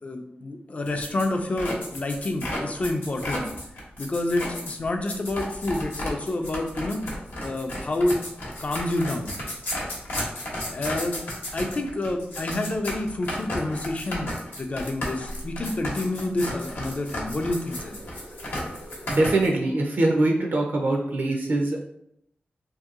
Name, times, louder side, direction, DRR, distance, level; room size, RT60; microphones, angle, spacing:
voice 1, 0.0-3.5 4.0-7.0 7.4-8.2 8.6-9.4 10.7-11.2 11.5-14.3 14.6-18.0, left 2 dB, 40° left, 5 dB, 0.4 m, -28 dB
sound 1, 0.9-19.5, left 1 dB, 85° left, 0.8 m, -33 dB
voice 2, 19.1-21.8, right 2 dB, 60° right, 1 dB, 0.4 m, -23 dB
2.7 x 2.6 x 2.4 m, 0.75 s
wide cardioid pair, 105°, 4 cm